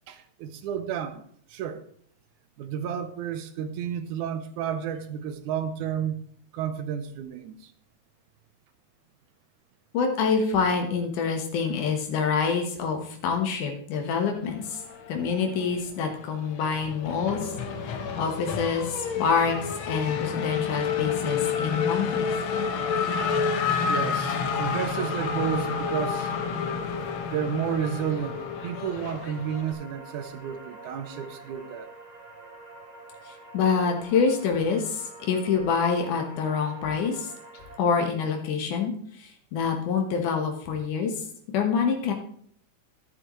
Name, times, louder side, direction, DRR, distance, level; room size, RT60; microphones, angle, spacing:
voice 1, 0.1-1.2 1.5-1.8 2.6-6.2 6.5-7.7 23.9-26.3 27.3-31.9, right 8 dB, 85° right, 2.3 m, -31 dB
voice 2, 9.9-14.8 15.1-17.5 17.8-22.2 33.3-37.3 37.8-42.1, left 5 dB, 90° left, 2.8 m, -26 dB
Race car auto racing / Accelerating revving vroom, 14.7-15.7 16.0-29.7, left 6 dB, 60° left, 1.4 m, -29 dB
sound 1, 17.1-24.8, left 1 dB, 20° left, 3.8 m, -45 dB
sound 2, 25.5-37.8, right 2 dB, 60° right, 0.4 m, -46 dB
11.0 x 11.0 x 3.1 m
omnidirectional pair, 3.5 m